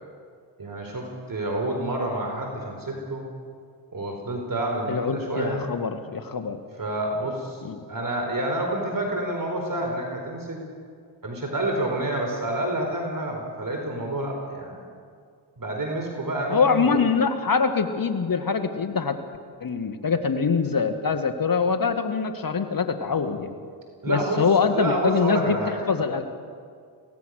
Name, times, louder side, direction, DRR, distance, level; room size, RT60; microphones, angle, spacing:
voice 1, 0.6-3.3 3.9-5.6 6.8-7.6 7.9-10.6 11.2-14.8 15.6-17.0 24.0-24.4 24.7-25.8, right 1 dB, 40° right, 2 dB, 4.5 m, -28 dB
voice 2, 4.9-6.6 7.6-7.8 16.5-19.2 19.6-23.5 24.0-25.6 25.9-26.2, left 5 dB, 40° left, 8 dB, 2.1 m, -24 dB
23.5 x 17.5 x 6.6 m, 2.1 s
hypercardioid pair, 40°, 50 cm